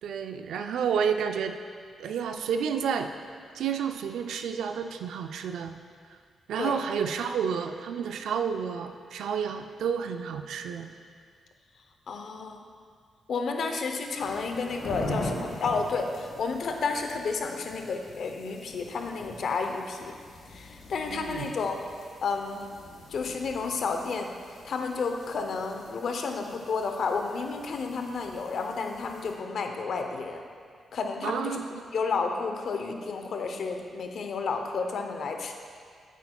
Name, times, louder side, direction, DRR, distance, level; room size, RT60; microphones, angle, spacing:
voice 1, 0.0-1.6 2.0-3.1 3.5-5.7 6.1-6.2 6.5-10.9 21.1-21.5 31.2-31.8, right 7 dB, 90° right, 6 dB, 0.4 m, -30 dB
voice 2, 12.1-12.6 13.3-20.2 20.5-21.8 22.2-22.6 23.1-24.3 24.6-30.4 30.9-31.6 31.9-35.5, left 4 dB, 65° left, 4 dB, 0.7 m, -31 dB
sound 1, 14.1-29.4, left 2 dB, 80° left, 1.1 m, -42 dB
8.6 x 8.2 x 2.3 m, 2.1 s
cardioid pair, 100°, 0 cm